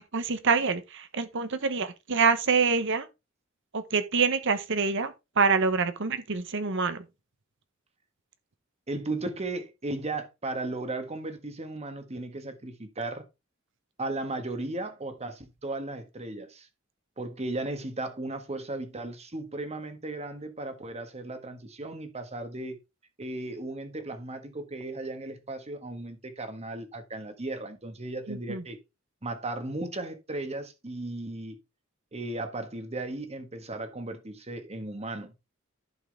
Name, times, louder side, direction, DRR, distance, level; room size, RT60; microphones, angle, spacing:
voice 1, 0.1-3.1 3.7-7.0 28.3-28.6, right 5 dB, 65° right, 1.1 m, -26 dB
voice 2, 8.9-13.2 14.0-16.7 17.2-22.8 23.2-28.8 29.2-31.6 32.1-35.3, right 2 dB, 30° right, 1.6 m, -36 dB
11.0 x 6.1 x 3.4 m
head